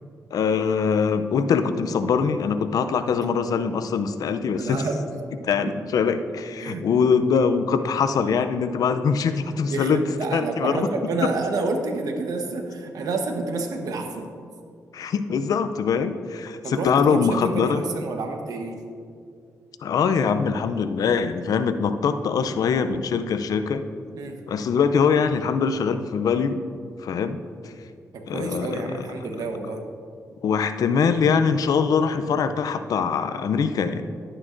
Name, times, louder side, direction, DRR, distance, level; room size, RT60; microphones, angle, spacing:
voice 1, 0.3-4.8 5.4-10.0 10.3-10.9 14.9-17.8 19.8-23.8 24.5-26.6 27.0-27.4 27.6-27.7 28.3-28.8 30.4-34.1, left 6 dB, 75° left, 10 dB, 0.5 m, -23 dB
voice 2, 4.6-5.0 5.6-5.7 6.6-6.8 9.7-14.3 16.6-18.8 24.2-24.4 28.1-29.8, right 3 dB, 75° right, 4 dB, 1.1 m, -29 dB
11.0 x 9.7 x 2.6 m, 2.2 s
cardioid pair, 70°, 6 cm